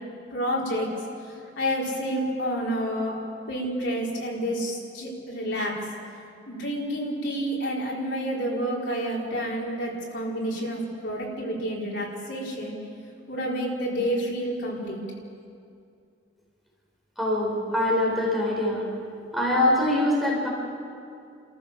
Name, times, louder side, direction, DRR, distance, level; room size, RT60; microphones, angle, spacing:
voice 1, 0.3-0.9 1.6-3.2 3.5-5.8 6.5-12.8 13.3-15.0, equal, 80° left, -4 dB, 5.0 m, -29 dB
voice 2, 17.2-18.8 19.3-20.5, left 1 dB, ahead, -5 dB, 4.4 m, -23 dB
28.0 x 14.5 x 7.2 m, 2.4 s
head